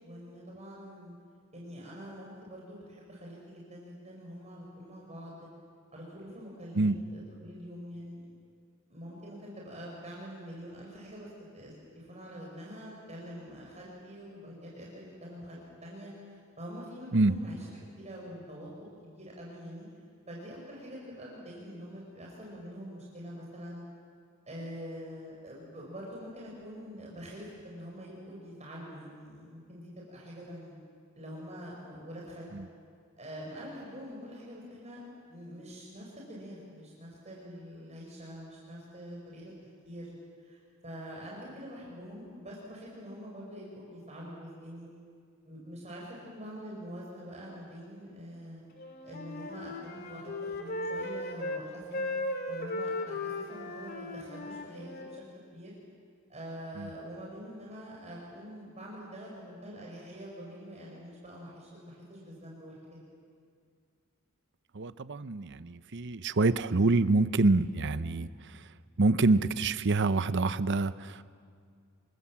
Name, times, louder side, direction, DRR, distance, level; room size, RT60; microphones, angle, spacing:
voice 1, 0.0-1.1 1.5-5.5 5.9-8.3 8.9-18.7 19.0-19.9 20.3-23.8 24.5-30.7 31.1-32.5 33.2-35.0 35.3-39.5 39.8-44.9 45.4-48.6 49.0-52.1 52.5-55.2 55.5-55.7 56.3-63.0, equal, 30° right, -3 dB, 5.0 m, -45 dB
Wind instrument woodwind instrument, 48.8-51.7 51.9-55.2, left 2 dB, 45° left, 2.2 m, -37 dB
voice 2, 64.7-68.6 69.0-71.2, right 3 dB, 55° right, 13 dB, 0.8 m, -26 dB
26.5 x 24.0 x 7.5 m, 2.2 s
head